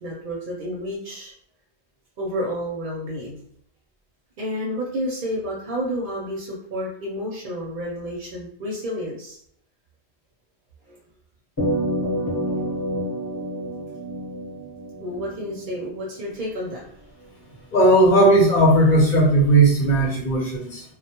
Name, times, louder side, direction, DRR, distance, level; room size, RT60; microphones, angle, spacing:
voice 1, 0.0-1.3 2.2-3.5 4.4-9.4 10.9-11.0 15.0-16.8, equal, 55° right, -3 dB, 0.6 m, -30 dB
sound 1, 11.6-16.2, equal, 20° left, 0.9 m, -28 dB
voice 2, 17.7-20.8, right 1 dB, 50° left, -5 dB, 0.8 m, -16 dB
2.1 x 2.1 x 2.8 m, 0.68 s
omnidirectional pair, 1.1 m